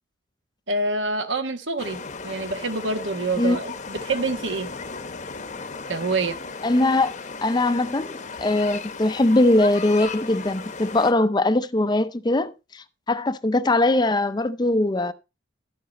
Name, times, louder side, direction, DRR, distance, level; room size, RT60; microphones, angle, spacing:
voice 1, 0.7-4.7 5.9-6.4, right 3 dB, 75° right, 1.2 m, -26 dB
sound 1, 1.8-11.1, left 4 dB, 40° left, 0.8 m, -36 dB
voice 2, 6.6-7.1 7.4-15.1, left 2 dB, 20° left, 0.5 m, -21 dB
12.0 x 7.7 x 4.0 m
head